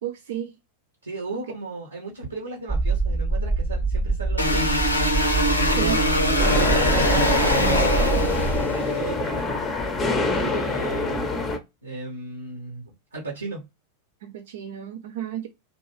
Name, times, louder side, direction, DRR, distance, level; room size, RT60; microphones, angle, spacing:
voice 1, 0.0-0.5 1.3-1.4 5.7-6.0 6.4-7.0 14.2-15.5, right 10 dB, 55° right, 0.3 m, -32 dB
voice 2, 1.0-4.7 6.5-9.6 10.0-11.3 11.8-13.6, right 3 dB, 85° right, 0.8 m, -35 dB
sound 1, 2.7-8.7, right 3 dB, 10° right, 0.8 m, -25 dB
sound 2, 4.4-8.9, left 1 dB, 85° left, 0.6 m, -23 dB
sound 3, 6.4-11.6, left 3 dB, 20° left, 0.6 m, -25 dB
2.5 x 2.2 x 3.0 m
figure-of-eight pair, 90°, 0 cm